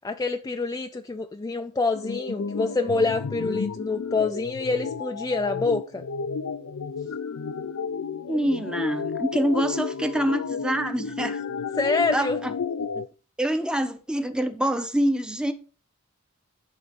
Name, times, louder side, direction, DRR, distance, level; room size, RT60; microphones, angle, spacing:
voice 1, 0.0-6.0 11.8-12.4, left 3 dB, 15° left, 0.4 m, -26 dB
sound 1, 1.9-13.1, left 5 dB, 85° left, 0.5 m, -32 dB
voice 2, 8.3-11.4 12.1-12.5 13.4-15.5, right 1 dB, 5° right, 0.8 m, -26 dB
11.0 x 3.9 x 5.3 m
head